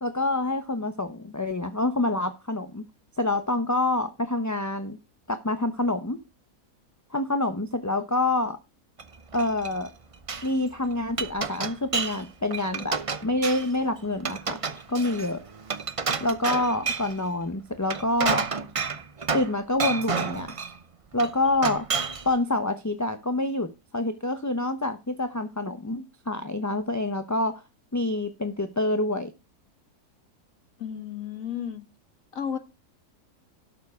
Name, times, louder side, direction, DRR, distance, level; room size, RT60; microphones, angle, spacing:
voice 1, 0.0-2.8 3.2-5.0 5.3-6.2 7.1-8.6 9.3-9.9 10.4-14.6 14.9-15.4 16.2-18.4 19.3-20.5 21.1-21.9 22.2-27.6 27.9-29.3, left 2 dB, 20° left, 0.6 m, -27 dB
Glass, 9.0-9.9 10.1-10.5 10.9-12.2 12.5-13.8 14.2-17.2 17.7-19.5 19.8-20.8 21.2-22.3, right 5 dB, 40° right, 0.5 m, -30 dB
voice 2, 30.8-31.8 32.3-32.6, left 8 dB, 60° left, 1.8 m, -33 dB
12.0 x 7.1 x 4.8 m
omnidirectional pair, 1.6 m